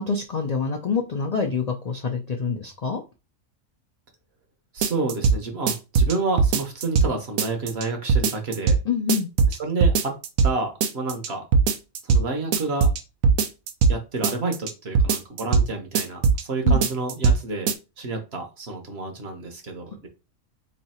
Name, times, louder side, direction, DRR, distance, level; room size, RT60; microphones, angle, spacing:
voice 1, 0.0-3.0 8.9-9.3 16.6-16.8, left 5 dB, 70° left, 2 dB, 0.3 m, -26 dB
voice 2, 4.7-8.8 9.5-10.2 10.4-11.4 12.0-12.9 13.9-17.7 18.0-20.1, right 3 dB, 55° right, 4 dB, 1.1 m, -29 dB
sound 1, 4.8-5.4 5.7-7.1 7.4-8.8 9.1-9.6 9.8-10.5 10.8-11.3 11.5-12.2 12.5-14.0 14.2-14.7 15.0-15.7 16.0-16.4 16.7-17.4 17.7-17.8, right 5 dB, 90° right, 1.0 m, -19 dB
3.2 x 2.7 x 4.2 m, 0.29 s
omnidirectional pair, 1.4 m